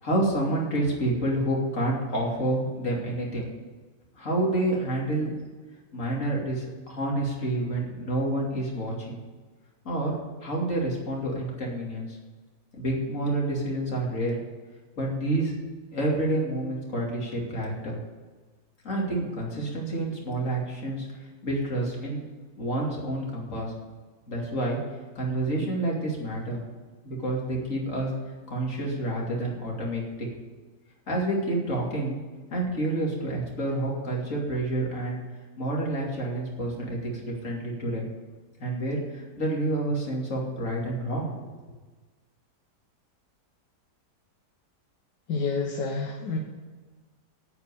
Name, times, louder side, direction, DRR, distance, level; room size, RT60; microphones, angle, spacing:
voice 1, 0.0-3.5 4.2-5.4 5.9-9.2 9.8-10.2 10.4-12.2 12.8-14.4 15.0-15.5 15.9-18.0 18.8-21.1 21.4-22.2 22.6-23.7 24.3-24.8 25.1-26.6 27.0-28.1 28.5-30.3 31.1-32.2 32.5-35.2 35.6-38.1 38.6-41.4, right 1 dB, 45° left, -2 dB, 3.1 m, -28 dB
voice 2, 45.3-46.4, left 4 dB, 90° left, 1 dB, 1.8 m, -28 dB
8.8 x 8.6 x 8.4 m, 1.3 s
omnidirectional pair, 1.8 m